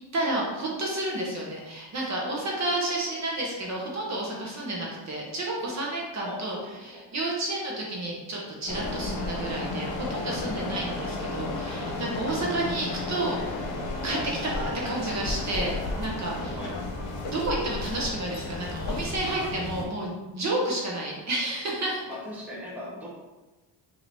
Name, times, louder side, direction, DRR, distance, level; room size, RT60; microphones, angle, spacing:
voice 1, 0.1-6.6 6.8-13.6 14.0-16.6 17.3-22.0, right 1 dB, 35° right, -3 dB, 0.9 m, -31 dB
voice 2, 6.2-7.1 10.6-10.8 12.1-12.5 16.5-16.8 22.1-23.2, left 1 dB, 5° right, -5 dB, 0.8 m, -40 dB
sound 1, 8.7-19.8, left 2 dB, 80° left, 1.0 m, -33 dB
5.1 x 2.8 x 3.4 m, 1.2 s
cardioid pair, 170°, 45 cm